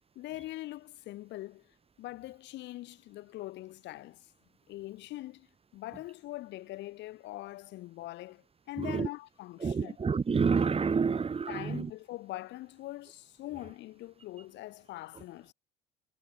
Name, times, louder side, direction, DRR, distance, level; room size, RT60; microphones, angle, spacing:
voice 1, 0.2-1.7 2.0-4.3 4.7-5.5 5.7-10.0 11.5-15.5, left 17 dB, 65° left, 5.3 m, -42 dB
voice 2, 9.6-11.8, right 5 dB, 30° right, 2.8 m, -28 dB
hypercardioid pair, 70°, 20 cm